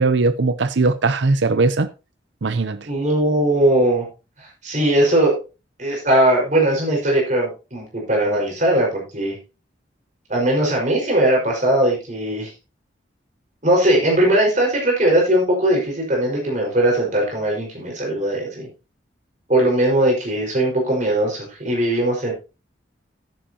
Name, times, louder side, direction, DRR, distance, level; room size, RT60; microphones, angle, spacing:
voice 1, 0.0-1.9 2.4-2.9, right 3 dB, 75° right, 0.7 m, -19 dB
voice 2, 2.8-4.1 4.4-5.4 5.8-9.4 10.3-12.5 13.6-18.7 19.5-22.3, right 1 dB, 40° right, 4.9 m, -19 dB
10.5 x 10.0 x 2.9 m
head